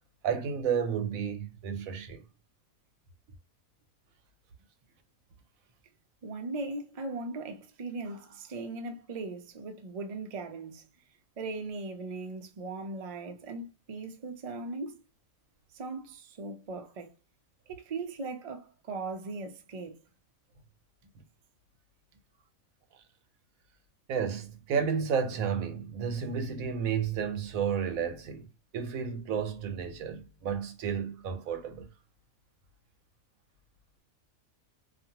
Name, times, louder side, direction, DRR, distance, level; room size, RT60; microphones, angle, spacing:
voice 1, 0.2-2.2 24.1-28.5 28.7-31.9, right 7 dB, 85° right, 1.1 m, -32 dB
voice 2, 6.2-10.9 11.4-15.0 15.7-17.1 17.7-20.0, right 3 dB, 65° right, 0.3 m, -39 dB
2.5 x 2.4 x 2.7 m
omnidirectional pair, 1.4 m